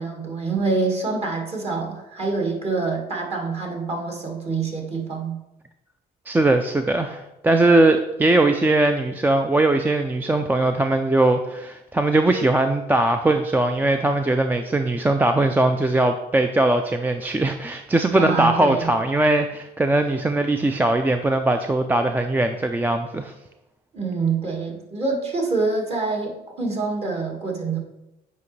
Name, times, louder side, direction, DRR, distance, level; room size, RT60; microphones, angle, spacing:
voice 1, 0.0-5.4 18.2-18.9 23.9-27.8, right 4 dB, 35° right, 0 dB, 1.8 m, -26 dB
voice 2, 6.3-23.3, right 2 dB, 10° right, 6 dB, 0.4 m, -20 dB
8.1 x 5.0 x 3.2 m, 0.92 s
cardioid pair, 110°, 17 cm